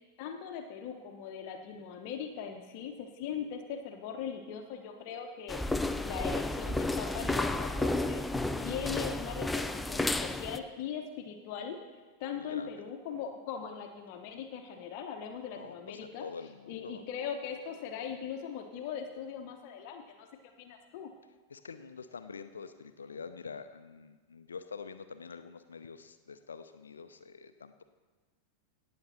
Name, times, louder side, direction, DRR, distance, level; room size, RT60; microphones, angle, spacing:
voice 1, 0.2-5.6 6.0-8.2 8.6-11.8 12.2-16.3 16.7-21.1, left 7 dB, 45° left, 5 dB, 1.0 m, -40 dB
sound 1, 5.5-10.6, left 2 dB, 5° left, 0.5 m, -32 dB
voice 2, 12.3-12.7 15.5-17.0 21.5-27.8, left 5 dB, 70° left, 10 dB, 0.7 m, -46 dB
18.0 x 7.7 x 4.3 m, 1.3 s
figure-of-eight pair, 90°, 0 cm